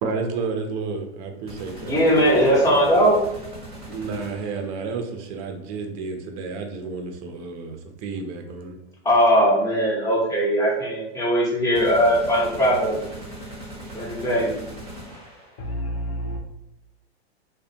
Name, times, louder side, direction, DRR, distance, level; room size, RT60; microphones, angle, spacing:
voice 1, 0.0-2.0 3.9-8.7, right 4 dB, 40° right, 0.5 m, -31 dB
sound 1, 1.5-4.8 11.7-15.8, right 1 dB, 20° right, 0.9 m, -39 dB
voice 2, 1.8-3.2 9.0-13.0 13.9-14.5, equal, 10° left, 0.9 m, -19 dB
voice 3, 15.6-16.4, equal, 60° left, 0.8 m, -29 dB
2.4 x 2.1 x 2.7 m
hypercardioid pair, 115°, 32 cm